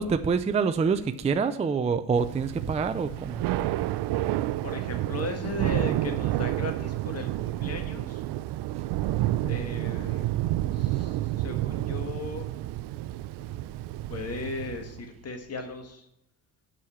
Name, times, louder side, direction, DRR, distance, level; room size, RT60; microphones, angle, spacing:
voice 1, 0.0-3.4, right 5 dB, 15° right, 9 dB, 0.4 m, -26 dB
Thunder / Rain, 2.2-15.1, right 15 dB, 85° right, 0.5 m, -30 dB
voice 2, 4.2-8.2 9.4-10.3 10.7-12.5 13.4-16.1, left 4 dB, 40° left, 6 dB, 1.7 m, -37 dB
7.5 x 6.5 x 6.9 m, 0.81 s
cardioid pair, 140°, 40 cm